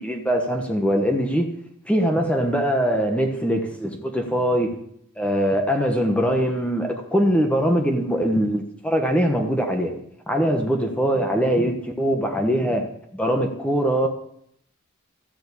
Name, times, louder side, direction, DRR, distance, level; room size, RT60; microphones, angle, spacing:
voice 1, 0.0-1.5 1.9-4.7 5.2-9.9 10.3-14.1, equal, 5° left, 3 dB, 1.3 m, -22 dB
14.0 x 7.7 x 8.5 m, 0.70 s
head